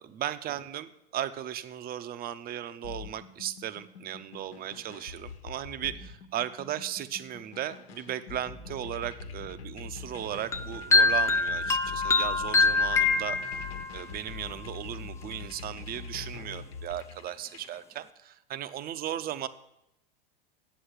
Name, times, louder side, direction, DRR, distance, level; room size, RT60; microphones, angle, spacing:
voice 1, 0.0-13.4 13.9-19.5, right 11 dB, 30° right, 13 dB, 0.6 m, -36 dB
sound 1, 2.8-17.8, left 5 dB, 80° left, 1.3 m, -43 dB
sound 2, 10.5-14.0, left 3 dB, 10° left, 0.3 m, -24 dB
8.0 x 7.7 x 8.2 m, 0.87 s
hypercardioid pair, 105°, 30 cm